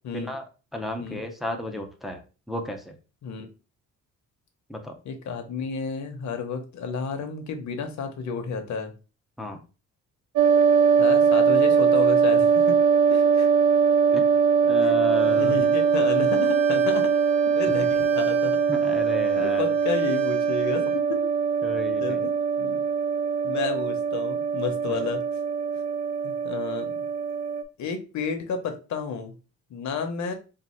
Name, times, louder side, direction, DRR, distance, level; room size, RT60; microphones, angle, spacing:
voice 1, 0.1-0.4 0.7-2.2 2.5-2.9 4.7-5.0 9.4-9.6 14.1-14.4 14.6-15.6 18.7-19.7 21.6-22.3 24.9-25.1, left 1 dB, ahead, 2 dB, 0.5 m, -33 dB
voice 2, 5.0-8.9 11.0-12.8 13.1-13.5 14.8-14.9 15.2-17.1 17.5-18.6 19.4-21.2 22.0-22.8 23.4-25.2 26.2-26.9 27.8-29.3 29.7-30.3, left 5 dB, 60° left, 6 dB, 0.9 m, -31 dB
sound 1, 10.4-27.6, right 6 dB, 65° right, 0.5 m, -22 dB
Bowed string instrument, 15.0-21.0, right 13 dB, 45° right, 1.7 m, -40 dB
3.7 x 2.5 x 4.3 m, 0.33 s
cardioid pair, 165°, 33 cm